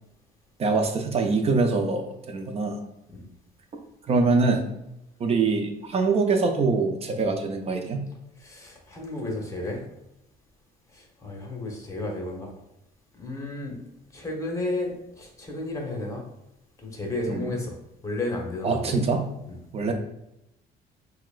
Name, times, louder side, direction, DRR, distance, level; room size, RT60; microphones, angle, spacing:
voice 1, 0.6-2.8 4.0-4.7 5.2-8.0 17.3-17.5 18.6-19.2 19.7-19.9, right 4 dB, 35° right, 5 dB, 0.5 m, -24 dB
voice 2, 8.4-9.8 10.9-12.5 13.2-13.8 14.1-16.2 16.8-17.7 18.0-19.0 19.5-19.6, left 2 dB, 20° left, 0 dB, 1.0 m, -32 dB
5.7 x 2.2 x 2.4 m, 0.85 s
cardioid pair, 110°, 17 cm